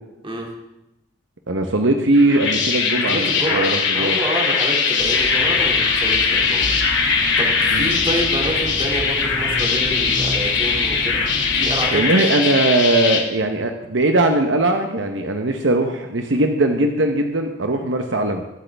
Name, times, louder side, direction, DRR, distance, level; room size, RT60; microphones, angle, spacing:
voice 1, 1.5-4.2 7.7-7.9 11.9-18.4, right 2 dB, 70° right, 5 dB, 0.9 m, -20 dB
sound 1, 2.1-13.2, left 5 dB, 65° left, 2.4 m, -20 dB
voice 2, 3.1-6.7 7.4-11.2 11.6-12.0, right 1 dB, 25° right, 0 dB, 2.3 m, -27 dB
sound 2, 5.0-11.9, equal, 45° right, 1.9 m, -32 dB
23.0 x 8.1 x 3.4 m, 0.92 s
head